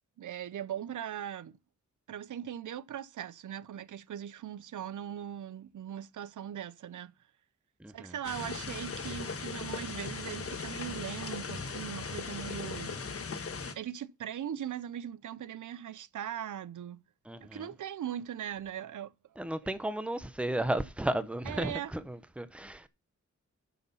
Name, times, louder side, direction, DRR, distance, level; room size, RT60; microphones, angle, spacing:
voice 1, 0.2-1.6 2.1-7.1 7.9-13.0 13.7-17.0 17.4-19.1 21.5-21.9, right 10 dB, 85° right, 0.6 m, -40 dB
voice 2, 7.8-8.1 17.3-17.7 19.4-22.9, right 1 dB, 5° right, 0.7 m, -34 dB
sound 1, 8.2-13.7, left 4 dB, 50° left, 1.3 m, -38 dB
9.2 x 6.4 x 5.6 m
wide cardioid pair, 175°, 30 cm